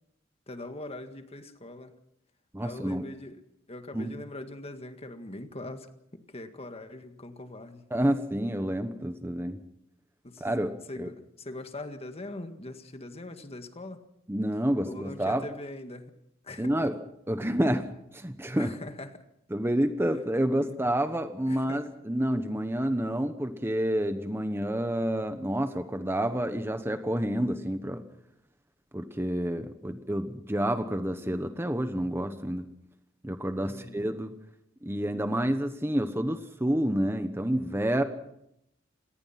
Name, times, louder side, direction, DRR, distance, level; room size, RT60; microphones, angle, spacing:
voice 1, 0.5-2.0 2.6-3.4 3.7-5.9 6.3-7.9 10.2-10.5 10.9-14.0 14.8-16.1 16.4-16.9 18.6-19.2 20.1-20.2 20.6-20.8 21.5-21.9 33.6-34.0, left 2 dB, 30° left, 8 dB, 1.8 m, -42 dB
voice 2, 2.5-3.1 3.9-4.1 7.9-9.6 10.4-10.7 11.0-11.1 14.3-15.4 16.6-16.9 17.3-17.9 18.1-18.7 19.5-28.0 28.9-32.7 33.2-34.3 34.8-38.0, right 1 dB, 10° right, 8 dB, 1.1 m, -29 dB
26.5 x 19.0 x 5.9 m, 0.78 s
head